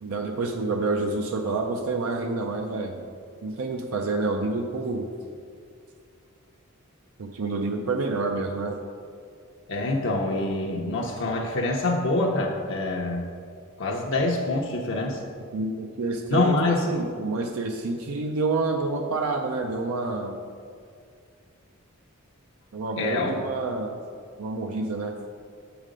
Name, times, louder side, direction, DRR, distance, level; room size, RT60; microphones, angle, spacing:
voice 1, 0.0-3.1 3.4-5.1 7.2-8.8 15.5-20.4 22.7-24.0 24.4-25.1, right 3 dB, 75° right, 3 dB, 0.5 m, -28 dB
voice 2, 9.7-13.3 13.8-15.2 16.3-16.9 23.0-23.3, left 2 dB, 60° left, -1 dB, 0.7 m, -25 dB
7.4 x 5.0 x 5.1 m, 2.3 s
head